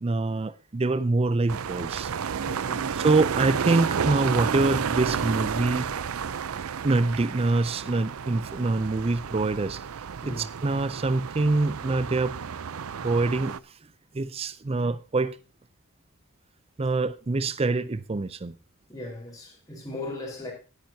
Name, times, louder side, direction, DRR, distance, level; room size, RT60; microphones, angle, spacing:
voice 1, 0.0-2.1 2.9-5.9 6.8-9.8 10.3-12.4 13.0-13.6 14.1-15.4 16.8-18.5, right 3 dB, 25° right, 0.5 m, -25 dB
sound 1, 1.5-13.6, right 7 dB, 80° right, 0.5 m, -31 dB
voice 2, 2.5-2.9 10.2-10.4 18.9-20.5, left 2 dB, 15° left, 4.3 m, -37 dB
17.0 x 9.0 x 2.8 m
head